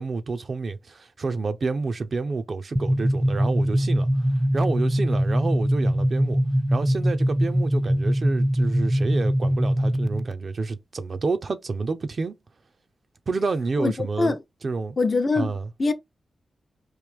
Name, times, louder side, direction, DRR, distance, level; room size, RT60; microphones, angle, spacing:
voice 1, 0.0-4.1 4.5-6.4 6.7-12.4 13.3-14.4 14.6-15.0 15.3-15.7, right 4 dB, 55° right, 0.6 m, -29 dB
sound 1, 2.8-10.3, equal, 10° right, 0.3 m, -22 dB
voice 2, 13.8-14.4 15.0-15.9, left 3 dB, 45° left, 0.6 m, -23 dB
3.1 x 2.5 x 3.5 m
cardioid pair, 80°, 0 cm